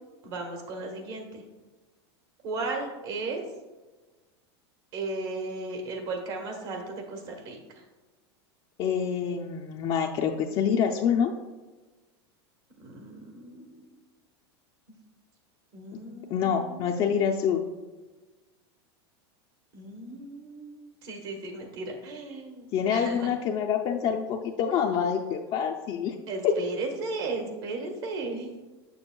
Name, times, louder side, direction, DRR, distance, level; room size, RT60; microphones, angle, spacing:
voice 1, 0.2-1.4 2.4-3.4 4.9-7.6 12.8-13.9 15.7-17.3 19.7-23.3 26.3-28.6, right 3 dB, 65° right, 2 dB, 1.4 m, -36 dB
voice 2, 8.8-11.3 16.3-17.6 22.7-26.2 26.4-26.5, left 7 dB, 40° left, 2 dB, 0.5 m, -26 dB
6.9 x 6.4 x 2.3 m, 1.2 s
supercardioid pair, 120°, 14 cm